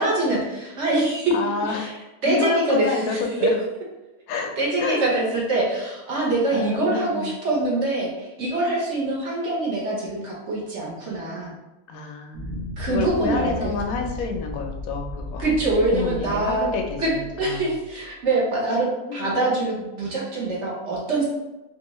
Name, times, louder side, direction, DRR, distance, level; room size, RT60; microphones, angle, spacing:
voice 1, 0.0-1.3 1.7-1.9 2.2-3.2 4.6-11.5 12.8-13.7 15.4-16.7 17.0-21.3, right 2 dB, 50° right, -4 dB, 1.1 m, -24 dB
voice 2, 1.3-1.9 2.2-3.5 4.3-5.1 6.5-7.3 11.9-15.6 15.9-17.7 19.1-19.6, left 4 dB, 70° left, 3 dB, 1.0 m, -29 dB
sound 1, 12.3-18.1, left 2 dB, 70° right, 1.2 m, -35 dB
3.8 x 2.5 x 2.9 m, 1.0 s
omnidirectional pair, 1.7 m